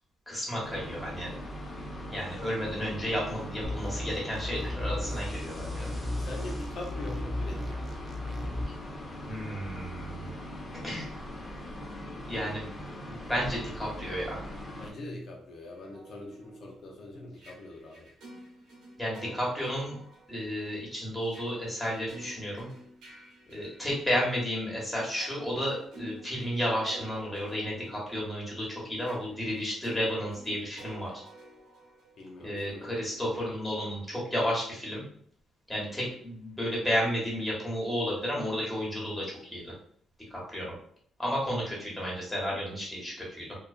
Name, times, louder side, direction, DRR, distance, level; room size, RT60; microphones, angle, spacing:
voice 1, 0.3-1.3 2.1-5.9 9.3-10.3 10.8-11.1 12.3-12.7 13.1-14.4 19.0-20.0 20.3-22.7 23.5-31.1 32.4-35.0 35.7-39.7 40.3-40.7 41.2-43.6, equal, 5° left, -5 dB, 1.2 m, -32 dB
sound 1, 0.6-14.9, equal, 30° left, 0.8 m, -41 dB
sound 2, 3.6-8.6, left 1 dB, 40° right, 0.4 m, -35 dB
voice 2, 6.1-8.0 14.8-18.1 32.2-33.4 36.0-36.1, left 1 dB, 60° left, -1 dB, 0.5 m, -43 dB
sound 3, 15.6-24.5 24.9-32.8, right 1 dB, 85° right, 0.9 m, -51 dB
2.5 x 2.2 x 2.4 m, 0.62 s
cardioid pair, 90°, 0 cm